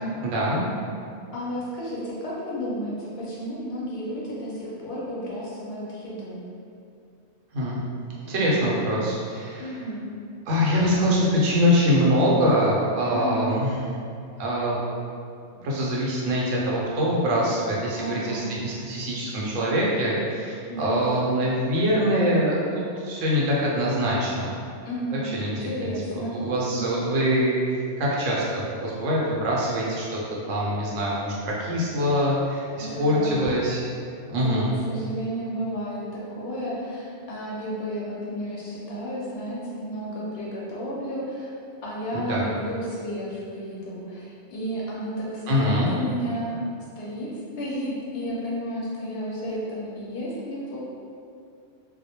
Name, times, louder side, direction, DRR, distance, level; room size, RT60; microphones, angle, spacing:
voice 1, 0.2-0.6 7.5-7.8 8.2-9.7 10.5-13.7 14.4-14.8 15.6-24.5 25.1-27.6 28.0-30.2 30.5-33.8 34.3-34.7 42.1-42.5 45.5-45.9, equal, 85° right, -5 dB, 1.0 m, -24 dB
voice 2, 1.3-6.4 9.6-10.1 13.1-13.5 17.9-18.9 20.7-21.1 24.8-25.3 25.6-26.3 32.7-33.4 34.3-41.5 41.8-46.5 47.0-47.3 47.6-50.8, equal, 65° left, -6 dB, 0.7 m, -32 dB
2.2 x 2.1 x 2.8 m, 2.4 s
omnidirectional pair, 1.2 m